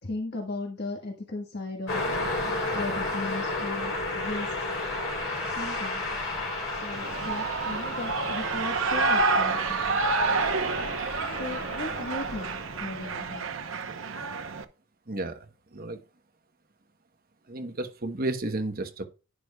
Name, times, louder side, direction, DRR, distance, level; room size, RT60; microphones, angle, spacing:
voice 1, 0.0-2.0 2.7-4.5 5.4-6.0 6.7-10.0 11.3-13.4, left 2 dB, 50° left, 1.5 m, -36 dB
Car passing by, 1.9-13.3, left 2 dB, 70° left, 3.7 m, -33 dB
Shout / Cheering, 6.9-14.6, right 3 dB, 65° right, 0.9 m, -29 dB
voice 2, 15.1-15.4 15.7-16.0 17.5-19.0, right 2 dB, 45° right, 1.1 m, -32 dB
11.0 x 9.6 x 2.3 m
head